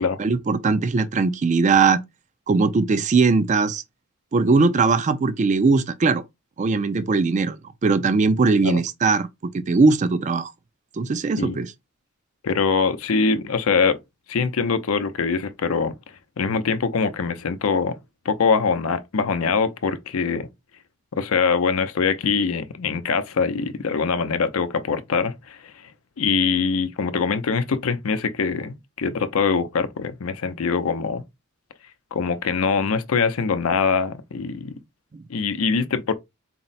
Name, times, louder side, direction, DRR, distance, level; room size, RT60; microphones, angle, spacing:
voice 1, 0.0-2.0 2.5-3.8 4.3-6.2 6.6-9.3 9.5-10.5 11.0-11.7 35.1-35.2, right 4 dB, 35° right, 0.4 m, -20 dB
voice 2, 12.4-14.0 14.3-15.9 16.4-18.0 18.3-20.5 21.1-25.7 26.2-31.2 32.1-34.7 35.3-36.1, left 5 dB, 80° left, 0.5 m, -23 dB
4.2 x 2.0 x 3.9 m
head